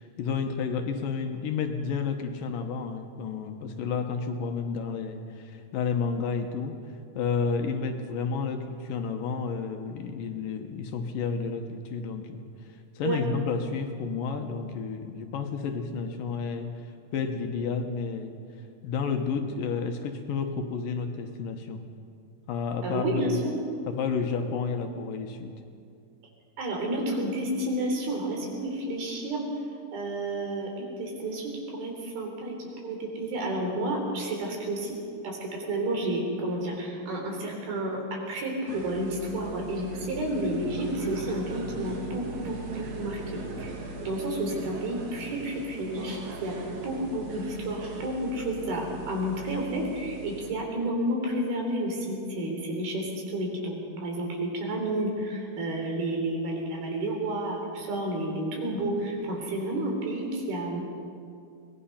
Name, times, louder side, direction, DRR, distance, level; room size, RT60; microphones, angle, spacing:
voice 1, 0.0-6.8 7.1-12.4 13.0-16.7 17.1-18.3 18.8-21.8 22.5-23.4 23.9-25.5, left 5 dB, 70° left, 5 dB, 2.7 m, -31 dB
voice 2, 22.8-23.5 26.6-29.4 29.9-32.5 32.8-35.0 35.2-43.2 43.6-46.6 46.8-60.8, right 1 dB, 70° right, 1 dB, 5.3 m, -31 dB
sound 1, 38.7-50.5, right 2 dB, 50° right, 2.9 m, -40 dB
23.5 x 19.5 x 5.8 m, 2.4 s
omnidirectional pair, 4.5 m